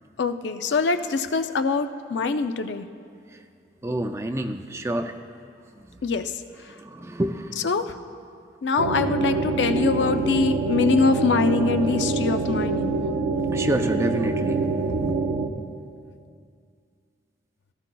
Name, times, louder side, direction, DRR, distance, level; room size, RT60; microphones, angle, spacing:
voice 1, 0.2-2.9 6.0-6.3 7.6-7.9 8.6-13.0, left 4 dB, 80° left, 9 dB, 0.5 m, -23 dB
voice 2, 3.8-5.2 5.7-6.0 6.7-7.7 13.5-15.2, right 1 dB, 15° right, 7 dB, 0.4 m, -29 dB
sound 1, 8.8-15.5, right 3 dB, 90° right, 0.7 m, -25 dB
16.5 x 13.5 x 2.3 m, 2.3 s
head